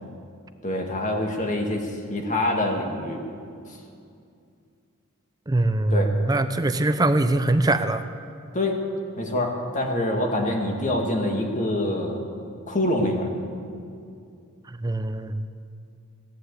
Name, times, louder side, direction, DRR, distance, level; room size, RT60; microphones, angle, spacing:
voice 1, 0.6-3.2 5.9-6.1 8.5-8.8 9.2-12.2 12.7-13.3, left 1 dB, 35° left, 2 dB, 2.0 m, -25 dB
voice 2, 5.5-8.0 14.8-15.5, right 2 dB, 20° right, 10 dB, 0.5 m, -22 dB
16.5 x 10.5 x 8.3 m, 2.4 s
head